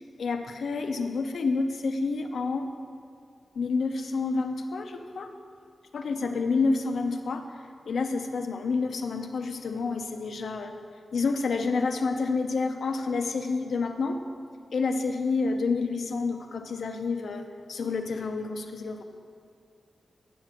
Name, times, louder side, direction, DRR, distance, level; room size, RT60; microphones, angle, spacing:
voice 1, 0.0-2.7 3.5-5.3 5.9-10.7 11.1-14.2 14.7-17.4 17.7-19.0, left 4 dB, 85° left, 6 dB, 0.8 m, -29 dB
10.0 x 6.0 x 7.5 m, 2.3 s
wide cardioid pair, 125°, 0 cm